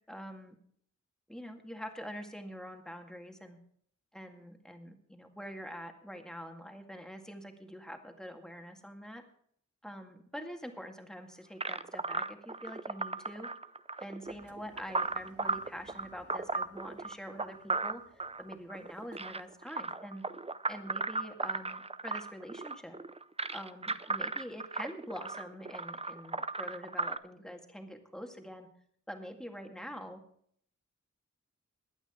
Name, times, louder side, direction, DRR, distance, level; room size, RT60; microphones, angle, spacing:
voice 1, 0.1-0.6 1.3-3.6 4.1-9.2 9.8-13.5 14.0-20.3 20.7-23.0 23.5-28.7 29.1-30.2, equal, ahead, 4 dB, 2.0 m, -45 dB
sound 1, 11.6-27.2, right 3 dB, 20° right, 0.5 m, -36 dB
Engine, 14.2-20.1, right 3 dB, 50° right, 1.7 m, -63 dB
21.0 x 9.0 x 3.7 m, 0.64 s
wide cardioid pair, 85°, 30 cm